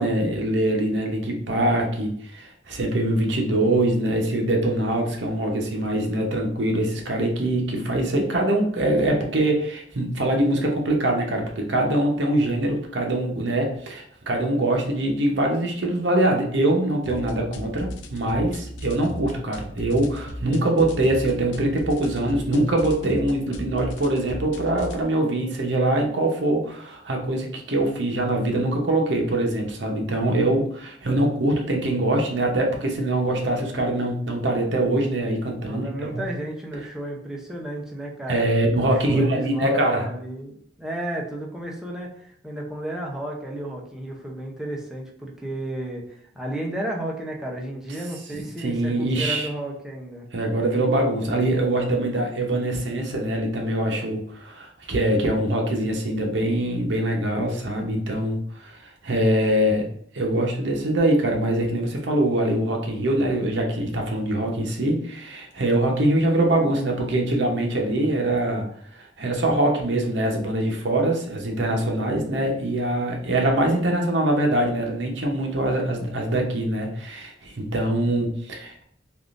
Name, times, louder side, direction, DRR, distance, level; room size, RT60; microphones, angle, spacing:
voice 1, 0.0-36.2 38.3-40.0 48.3-49.5 50.3-59.9 60.1-68.7 68.9-78.8, right 1 dB, 70° right, 1 dB, 0.8 m, -23 dB
sound 1, 17.0-25.0, equal, 80° left, 0.4 m, -36 dB
voice 2, 35.6-50.3, right 1 dB, 5° right, -2 dB, 0.5 m, -33 dB
3.5 x 2.4 x 2.4 m, 0.65 s
head